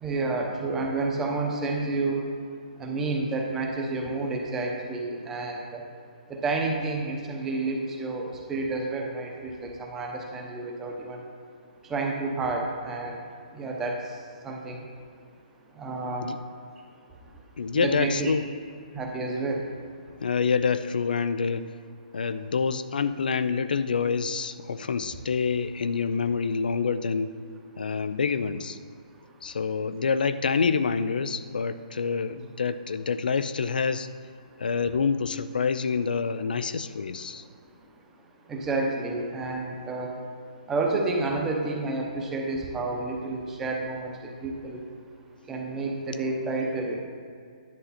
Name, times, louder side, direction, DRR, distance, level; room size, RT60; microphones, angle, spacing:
voice 1, 0.0-2.2 2.8-5.8 6.3-11.2 11.9-13.2 13.5-13.9 14.4-14.8 15.8-16.3 17.8-18.3 18.9-19.7 38.5-40.1 40.7-44.8 45.5-47.0, right 3 dB, 10° right, 0 dB, 0.8 m, -30 dB
voice 2, 17.6-18.4 20.2-21.8 22.1-27.3 27.8-28.8 29.4-34.1 34.6-37.4, left 5 dB, 85° left, 12 dB, 0.6 m, -27 dB
10.5 x 7.9 x 4.2 m, 2.3 s
hypercardioid pair, 175°, 5 cm